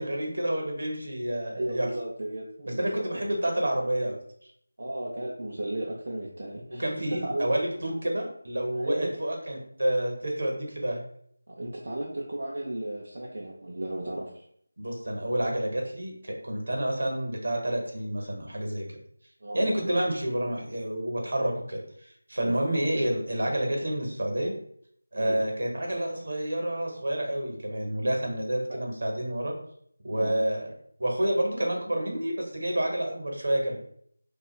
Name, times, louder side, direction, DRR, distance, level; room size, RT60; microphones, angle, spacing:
voice 1, 0.0-1.9 2.6-4.2 6.8-11.0 14.8-18.9 19.5-21.8 22.3-24.5 25.1-29.5 30.0-30.7 31.0-33.8, right 1 dB, 70° right, 1 dB, 0.9 m, -29 dB
voice 2, 1.5-3.3 4.8-7.7 8.7-9.1 11.5-14.4 19.4-19.8 22.4-22.6 25.2-25.4 28.7-28.8 30.1-30.3, right 1 dB, 50° right, -4 dB, 0.5 m, -35 dB
2.7 x 2.3 x 2.9 m, 0.66 s
figure-of-eight pair, 170°, 0 cm